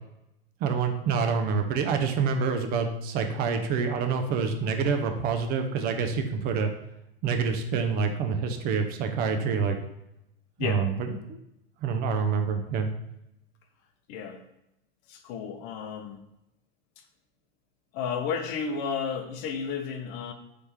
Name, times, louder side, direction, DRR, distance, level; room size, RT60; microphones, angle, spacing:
voice 1, 0.6-6.7 7.2-9.8 10.6-11.4 11.8-12.9, right 5 dB, 30° right, 6 dB, 0.5 m, -27 dB
voice 2, 15.1-16.2 17.9-20.3, left 6 dB, 40° left, 7 dB, 0.6 m, -32 dB
4.1 x 3.3 x 3.4 m, 0.84 s
hypercardioid pair, 105°, 29 cm